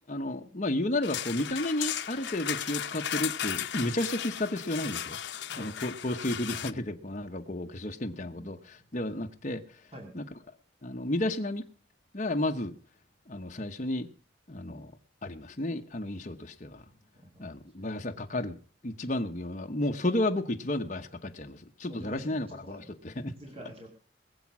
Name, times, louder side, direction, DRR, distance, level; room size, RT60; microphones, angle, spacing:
voice 1, 0.1-9.6 10.1-10.2 10.8-11.6 12.1-12.7 13.3-14.1 14.5-14.9 15.2-16.8 17.4-18.6 18.8-23.3, left 1 dB, 40° left, 1.0 m, -32 dB
sound 1, 1.0-6.7, left 10 dB, 70° left, 0.7 m, -35 dB
voice 2, 8.2-8.5 9.9-10.1 16.9-17.5 21.9-22.9 23.4-23.9, equal, 30° right, 2.3 m, -47 dB
21.0 x 7.3 x 6.1 m
head